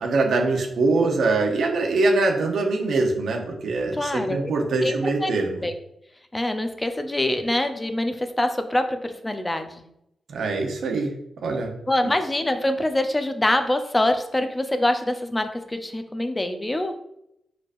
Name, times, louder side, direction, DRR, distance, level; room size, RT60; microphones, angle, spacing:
voice 1, 0.0-5.6 10.3-11.1 11.4-12.1, right 3 dB, 75° right, 1 dB, 0.9 m, -23 dB
voice 2, 3.9-4.5 4.8-4.9 5.2-5.3 5.6-5.7 6.3-9.8 11.9-16.9, left 1 dB, 20° left, 7 dB, 0.7 m, -24 dB
4.6 x 4.4 x 2.6 m, 0.79 s
supercardioid pair, 45°, 0 cm